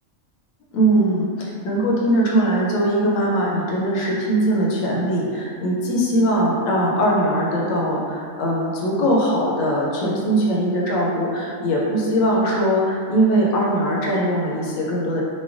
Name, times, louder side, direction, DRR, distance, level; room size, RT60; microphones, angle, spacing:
voice 1, 0.7-15.2, right 1 dB, 90° left, -4 dB, 1.0 m, -21 dB
3.1 x 2.2 x 2.4 m, 2.3 s
omnidirectional pair, 1.4 m